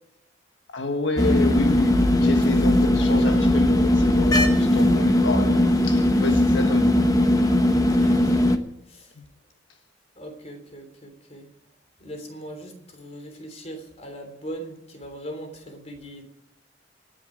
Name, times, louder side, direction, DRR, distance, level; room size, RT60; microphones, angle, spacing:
voice 1, 0.7-7.1 9.1-9.2, left 2 dB, 80° left, 1.5 m, -29 dB
sound 1, 1.2-8.6, left 1 dB, 20° left, 1.0 m, -19 dB
voice 2, 7.9-8.6 8.9-9.1 10.1-11.5 12.0-16.2, right 1 dB, 35° left, 3.3 m, -40 dB
26.0 x 10.0 x 5.1 m
head